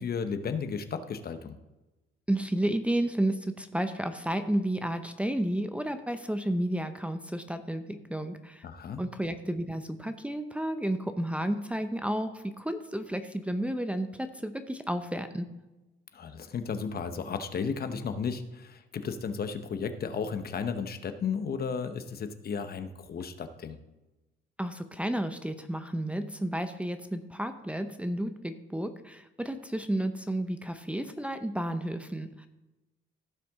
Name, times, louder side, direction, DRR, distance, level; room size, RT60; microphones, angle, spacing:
voice 1, 0.0-1.5 8.6-9.0 16.1-23.8, left 6 dB, 50° left, 9 dB, 1.0 m, -34 dB
voice 2, 2.3-8.7 9.0-15.5 24.6-32.5, right 1 dB, 5° right, 7 dB, 0.7 m, -32 dB
15.5 x 5.9 x 3.6 m, 1.1 s
cardioid pair, 90°, 20 cm